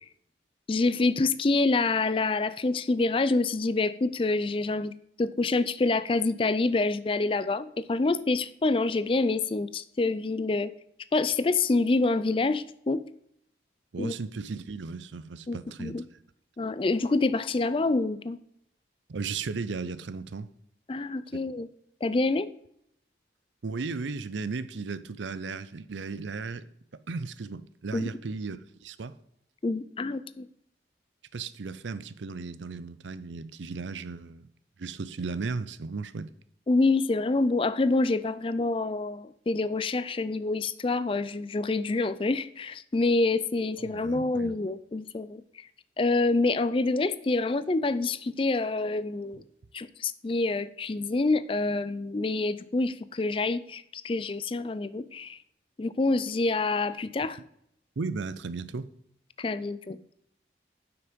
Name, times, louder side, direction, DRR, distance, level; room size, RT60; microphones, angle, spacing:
voice 1, 0.7-4.9 5.2-10.7 11.1-13.0 14.0-14.1 15.5-16.0 16.6-18.4 20.9-21.7 22.0-22.5 27.9-28.1 29.6-30.5 36.7-45.7 46.0-49.4 49.7-55.4 55.8-57.4 59.4-60.0, left 3 dB, 30° left, 0.4 m, -27 dB
voice 2, 13.9-16.0 19.1-20.5 21.3-21.4 23.6-26.7 27.1-29.2 31.3-34.5 34.8-36.3 43.8-44.5 58.0-58.9, right 4 dB, 90° right, 0.6 m, -35 dB
9.6 x 6.0 x 5.2 m
head